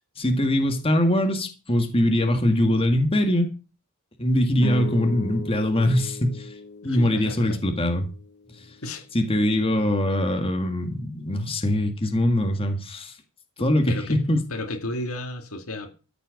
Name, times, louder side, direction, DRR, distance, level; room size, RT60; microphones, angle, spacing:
voice 1, 0.2-3.5 4.2-6.5 6.8-8.1 9.1-13.2 13.6-14.4, left 1 dB, 25° left, 2.0 m, -22 dB
sound 1, 4.6-9.1, left 2 dB, 55° left, 0.7 m, -37 dB
voice 2, 6.8-7.6 8.8-9.1 13.9-14.2 14.5-15.9, left 1 dB, 75° left, 2.2 m, -33 dB
13.5 x 8.2 x 6.6 m
head